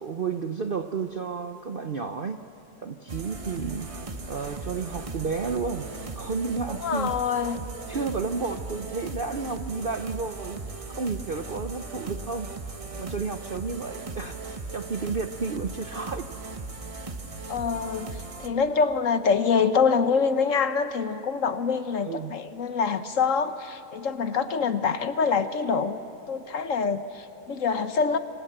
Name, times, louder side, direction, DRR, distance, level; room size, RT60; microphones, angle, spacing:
voice 1, 0.0-2.4 2.8-3.9 4.3-5.9 6.2-7.1 7.9-10.6 10.9-16.2 22.0-22.3, right 4 dB, 50° right, 7 dB, 0.6 m, -32 dB
sound 1, 3.1-18.5, right 3 dB, 25° right, 1.0 m, -38 dB
voice 2, 6.8-7.7 17.5-26.0 26.3-28.2, left 5 dB, 55° left, 10 dB, 1.1 m, -25 dB
26.5 x 24.5 x 7.8 m, 2.8 s
omnidirectional pair, 1.8 m